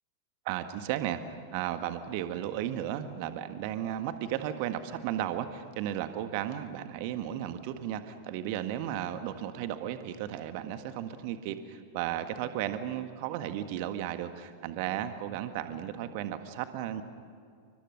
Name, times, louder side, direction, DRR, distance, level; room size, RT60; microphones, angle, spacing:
voice 1, 0.4-17.0, right 11 dB, 45° right, 9 dB, 1.7 m, -34 dB
29.5 x 24.0 x 6.5 m, 2.2 s
figure-of-eight pair, 90°, 0 cm